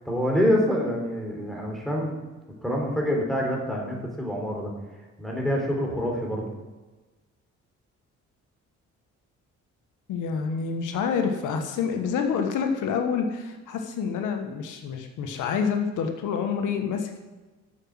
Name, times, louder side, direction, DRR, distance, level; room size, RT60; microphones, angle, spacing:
voice 1, 0.1-2.1 2.6-4.7 5.2-6.5, equal, ahead, -1 dB, 3.6 m, -26 dB
voice 2, 10.1-17.2, left 6 dB, 85° left, 5 dB, 1.3 m, -27 dB
8.1 x 7.1 x 7.8 m, 1.2 s
cardioid pair, 90°, 30 cm